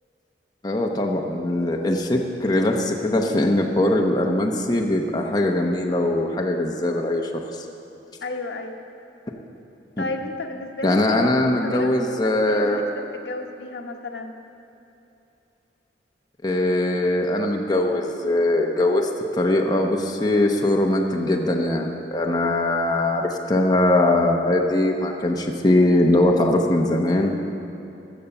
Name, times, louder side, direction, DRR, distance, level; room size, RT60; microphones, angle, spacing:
voice 1, 0.6-7.7 10.8-12.8 16.4-27.3, left 1 dB, 25° left, 1 dB, 0.8 m, -21 dB
voice 2, 8.2-8.8 10.0-11.3 11.6-11.9 12.2-12.8 13.1-14.3, left 2 dB, 75° left, 4 dB, 1.0 m, -32 dB
14.0 x 7.1 x 6.6 m, 2.9 s
head